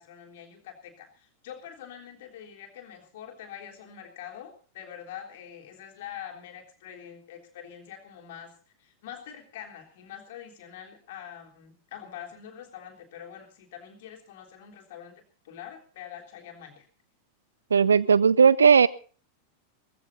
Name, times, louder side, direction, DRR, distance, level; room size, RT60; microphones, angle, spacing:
voice 1, 0.0-8.5 8.8-16.9, left 9 dB, 55° left, 3 dB, 3.5 m, -44 dB
voice 2, 17.7-18.9, right 6 dB, 70° right, 20 dB, 0.6 m, -17 dB
18.0 x 15.0 x 4.1 m, 0.39 s
figure-of-eight pair, 90°, 0 cm